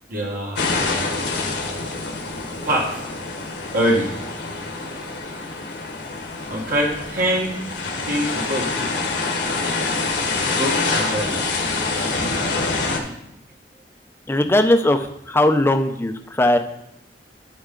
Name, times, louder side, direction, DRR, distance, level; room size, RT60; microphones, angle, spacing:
voice 1, 0.1-0.7 1.3-1.7 2.6-3.0 3.7-4.1 6.5-7.6 8.0-8.9 10.4-11.4, right 1 dB, 55° right, -2 dB, 1.5 m, -24 dB
sound 1, 0.6-13.0, left 3 dB, 70° left, 1.3 m, -26 dB
voice 2, 14.3-16.6, left 1 dB, 15° left, 7 dB, 0.5 m, -18 dB
11.0 x 5.4 x 3.8 m, 0.79 s
head